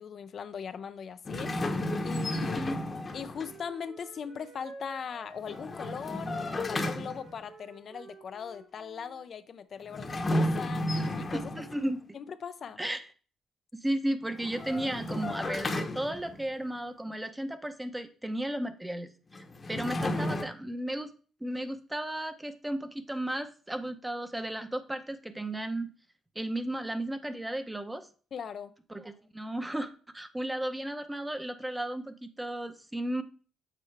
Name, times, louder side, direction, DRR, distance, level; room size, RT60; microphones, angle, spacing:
voice 1, 0.0-2.7 3.1-10.9 11.2-11.5 12.1-12.8 28.3-28.7, left 7 dB, 55° left, 0.4 m, -40 dB
sound 1, 1.3-3.6 5.4-7.4 9.9-11.9 14.3-16.5 19.3-20.4, left 1 dB, 35° left, 0.9 m, -32 dB
Wind instrument woodwind instrument, 2.7-9.2, right 2 dB, 65° right, 3.7 m, -51 dB
voice 2, 11.3-12.2 12.8-13.1 13.7-19.1 19.7-21.1 21.4-25.9 26.4-28.1 28.9-33.2, right 1 dB, 10° right, 0.7 m, -34 dB
7.5 x 4.4 x 3.3 m
cardioid pair, 90°, 0 cm